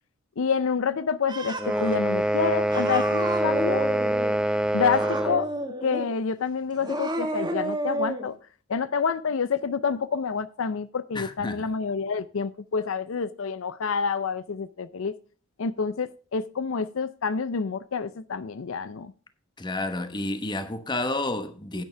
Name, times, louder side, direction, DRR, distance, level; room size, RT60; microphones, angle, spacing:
voice 1, 0.4-3.9 4.7-5.5 5.8-8.3 8.7-15.1 15.6-19.1, left 5 dB, 70° left, 0.5 m, -28 dB
Cat, 1.3-2.0 2.7-4.4 4.9-6.2 6.7-8.3, right 1 dB, 20° right, 1.5 m, -31 dB
sound 1, 1.6-5.5, right 1 dB, 5° right, 0.7 m, -25 dB
voice 2, 11.1-11.6 19.6-21.8, left 2 dB, 20° left, 1.0 m, -30 dB
10.5 x 9.3 x 3.3 m
head